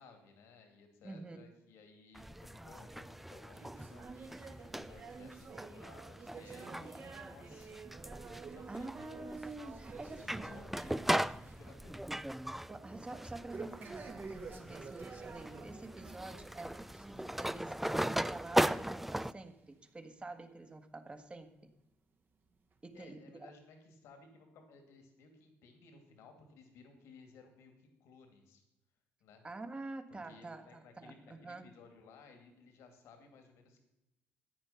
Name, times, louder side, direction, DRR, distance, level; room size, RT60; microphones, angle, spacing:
voice 1, 0.0-4.1 4.5-7.8 8.5-9.3 10.2-12.0 22.9-28.6 29.2-29.4 30.1-33.8, left 4 dB, 80° left, 6 dB, 2.5 m, -59 dB
voice 2, 1.0-1.5 6.7-7.0 8.4-10.9 12.5-21.6 22.8-23.5 29.4-31.7, right 2 dB, 25° right, 8 dB, 1.7 m, -48 dB
sound 1, 2.1-19.3, right 1 dB, 5° right, 0.4 m, -39 dB
sound 2, 3.5-11.1 11.4-11.7 12.1-12.2 13.5-16.2 16.6-16.8 17.5-17.6 18.4-18.5 19.3-19.4, right 4 dB, 45° right, 2.0 m, -50 dB
14.0 x 8.9 x 5.8 m, 0.94 s
cardioid pair, 80°, 5 cm